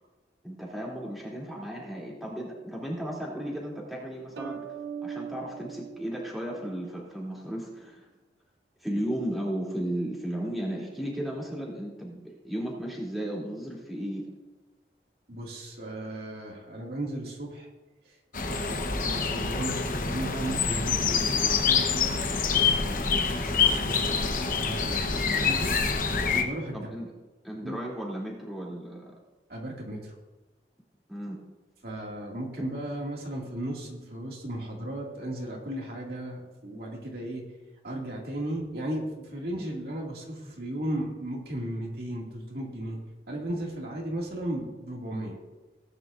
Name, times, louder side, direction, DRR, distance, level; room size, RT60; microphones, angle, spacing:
voice 1, 0.4-4.6 5.0-8.1 8.8-14.3 26.7-27.1 27.4-29.1 31.1-31.4, equal, ahead, -5 dB, 2.9 m, -35 dB
sound 1, 4.4-7.0, right 7 dB, 90° right, 0.9 m, -40 dB
voice 2, 15.3-17.7 18.0-18.2 18.4-25.7 26.3-27.1 27.6-27.8 29.5-30.1 31.8-37.4 37.8-43.0 43.3-45.4, right 1 dB, 60° right, -2 dB, 2.3 m, -36 dB
sound 2, 18.3-26.4, left 5 dB, 50° left, 1.0 m, -26 dB
18.5 x 9.9 x 2.6 m, 1.2 s
head